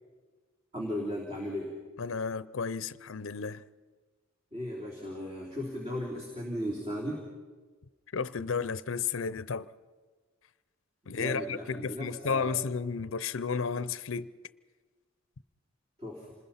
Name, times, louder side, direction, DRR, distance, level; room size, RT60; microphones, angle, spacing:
voice 1, 0.7-1.8 4.5-7.3 11.1-12.5 16.0-16.3, equal, 30° right, 3.4 m, -36 dB
voice 2, 2.0-3.6 8.1-9.7 11.1-14.3, left 5 dB, 70° left, 0.6 m, -32 dB
28.0 x 20.5 x 5.7 m
head